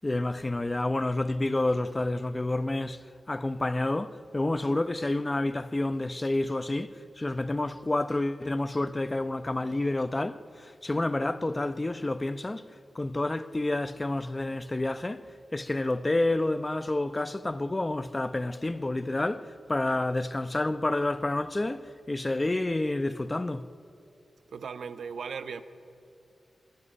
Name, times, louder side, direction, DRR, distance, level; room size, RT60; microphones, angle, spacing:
voice 1, 0.0-23.7, left 2 dB, 20° left, 0.8 m, -29 dB
voice 2, 24.5-25.6, right 6 dB, 80° right, 1.2 m, -37 dB
24.0 x 22.5 x 9.9 m
wide cardioid pair, 100°, 0 cm